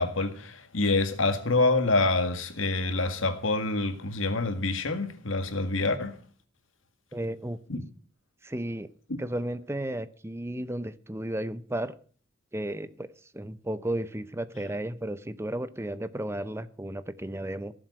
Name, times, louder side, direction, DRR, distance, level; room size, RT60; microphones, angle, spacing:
voice 1, 0.0-6.2 7.7-7.8 9.1-9.2, left 2 dB, 80° left, 2.0 m, -26 dB
voice 2, 7.1-7.6 8.4-8.9 9.2-12.0 12.5-17.7, right 1 dB, 15° right, 0.7 m, -34 dB
17.0 x 7.7 x 7.5 m
head